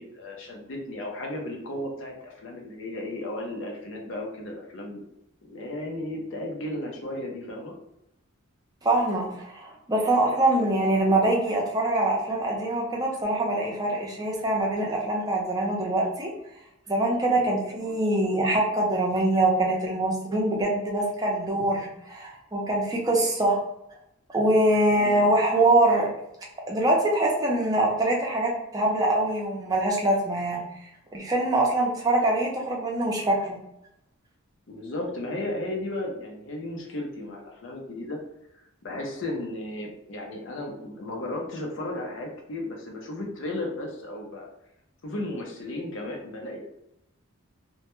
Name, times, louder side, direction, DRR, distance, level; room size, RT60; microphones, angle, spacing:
voice 1, 0.0-5.0 5.4-7.7 17.4-17.5 25.0-25.2 34.7-38.2 38.8-44.5 45.0-46.6, left 1 dB, 60° left, 0 dB, 0.5 m, -34 dB
voice 2, 8.8-16.3 16.9-23.6 24.3-26.1 26.7-30.6 31.1-33.6, right 1 dB, 15° right, -1 dB, 0.5 m, -24 dB
2.1 x 2.1 x 2.9 m, 0.80 s
head